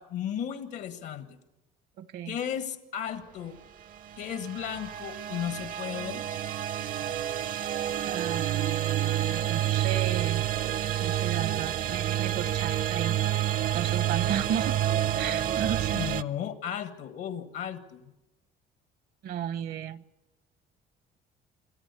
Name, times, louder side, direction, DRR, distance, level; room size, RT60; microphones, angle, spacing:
voice 1, 0.0-1.4 2.3-3.6 4.2-6.2 15.9-18.0, left 9 dB, 85° left, 9 dB, 1.5 m, -35 dB
voice 2, 2.0-2.4 8.0-10.4 11.0-14.8 15.2-16.0 19.2-20.0, right 9 dB, 70° right, 15 dB, 0.9 m, -34 dB
sound 1, 4.0-16.2, right 11 dB, 55° right, 0.6 m, -29 dB
26.5 x 13.5 x 8.3 m, 1.0 s
cardioid pair, 110°, 17 cm